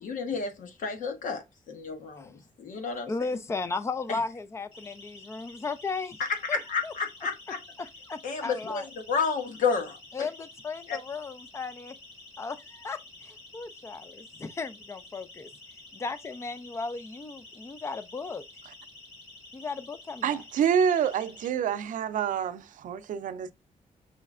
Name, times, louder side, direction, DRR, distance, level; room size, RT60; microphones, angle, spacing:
voice 1, 0.0-3.1 4.1-4.2 6.2-7.6 8.2-10.3 10.9-11.0, left 5 dB, 75° left, 1.0 m, -31 dB
voice 2, 3.1-6.2 6.5-6.6 6.8-6.9 7.8-8.8 10.1-12.0 12.4-15.5 15.9-18.4 19.5-20.4, left 4 dB, 20° left, 0.4 m, -35 dB
Siren, 4.7-21.5, left 2 dB, 40° left, 2.2 m, -50 dB
voice 3, 20.2-23.5, right 8 dB, 75° right, 0.5 m, -27 dB
5.6 x 3.1 x 2.4 m
wide cardioid pair, 140°, 14 cm